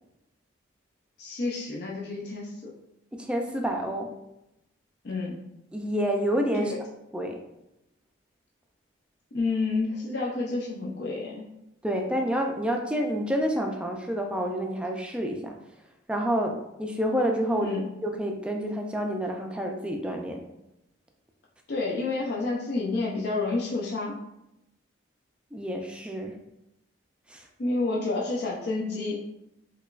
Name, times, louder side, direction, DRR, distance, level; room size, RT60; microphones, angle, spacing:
voice 1, 1.2-2.7 5.0-5.4 6.6-6.8 9.3-11.5 17.6-17.9 21.7-24.2 27.6-29.2, left 3 dB, 55° left, -4 dB, 0.5 m, -29 dB
voice 2, 3.1-4.1 5.7-6.7 7.1-7.4 11.8-15.6 16.1-20.4 25.5-26.3 27.3-27.5, equal, 5° right, 2 dB, 0.3 m, -28 dB
4.7 x 2.3 x 2.3 m, 0.88 s
head